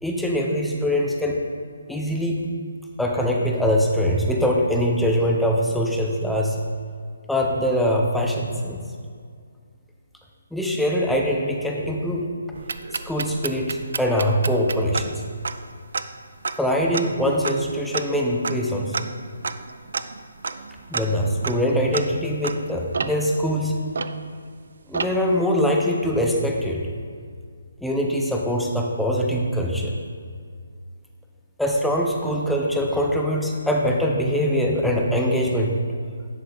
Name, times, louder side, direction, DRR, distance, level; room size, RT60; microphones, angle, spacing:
voice 1, 0.0-1.4 1.9-2.3 3.0-6.6 7.3-8.8 10.5-12.3 13.1-15.1 16.6-19.0 20.9-23.7 24.9-26.8 27.8-29.9 31.6-35.7, equal, ahead, -1 dB, 0.6 m, -23 dB
sound 1, 12.5-24.6 24.9-25.4, right 4 dB, 65° right, 0.4 m, -32 dB
10.5 x 5.0 x 3.8 m, 2.1 s
hypercardioid pair, 170°, 0 cm